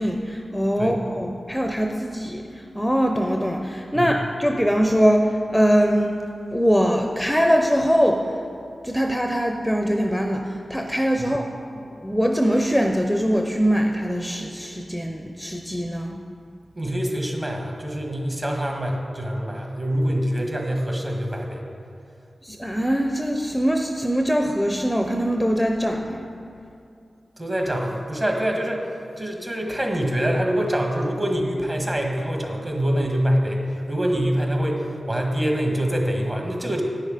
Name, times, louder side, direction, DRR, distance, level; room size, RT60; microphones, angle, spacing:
voice 1, 0.0-2.4 2.7-6.2 6.5-8.2 8.8-11.4 12.0-16.2 22.4-26.3, equal, 5° left, 3 dB, 0.6 m, -22 dB
voice 2, 16.7-21.6 27.4-28.9 29.2-36.8, equal, 30° right, 1 dB, 1.6 m, -25 dB
9.6 x 6.4 x 5.0 m, 2.5 s
cardioid pair, 45°, 0 cm